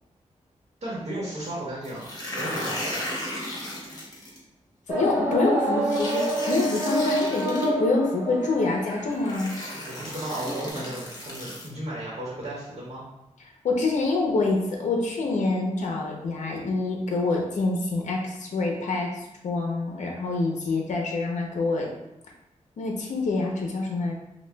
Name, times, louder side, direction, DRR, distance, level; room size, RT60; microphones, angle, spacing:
voice 1, 0.8-2.1 2.3-3.0 9.9-13.0, right 1 dB, 65° right, -6 dB, 1.1 m, -34 dB
sound 1, 1.8-4.4 5.8-7.7 8.7-8.8 9.2-11.7, left 1 dB, 30° left, 1.1 m, -35 dB
voice 2, 4.9-9.5 13.6-21.9 22.8-24.2, left 3 dB, 75° left, 0 dB, 0.6 m, -26 dB
sound 2, 4.9-10.7, right 1 dB, 20° right, 0.9 m, -29 dB
5.8 x 2.2 x 2.2 m, 0.91 s
wide cardioid pair, 95°, 13 cm